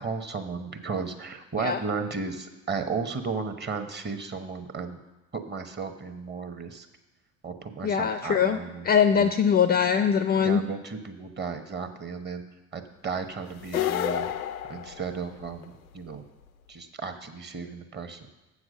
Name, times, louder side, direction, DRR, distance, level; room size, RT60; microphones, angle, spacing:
voice 1, 0.0-5.0 5.3-6.9 7.4-8.9 9.1-9.3 10.4-12.4 12.7-14.3 14.7-16.2 16.7-18.3, right 5 dB, 25° right, 7 dB, 1.0 m, -34 dB
voice 2, 7.8-8.6 8.8-10.6, left 7 dB, 25° left, 9 dB, 0.4 m, -22 dB
sound 1, 13.6-15.6, left 10 dB, 85° left, 0.5 m, -30 dB
7.7 x 6.2 x 6.4 m, 1.1 s
figure-of-eight pair, 60°, 41 cm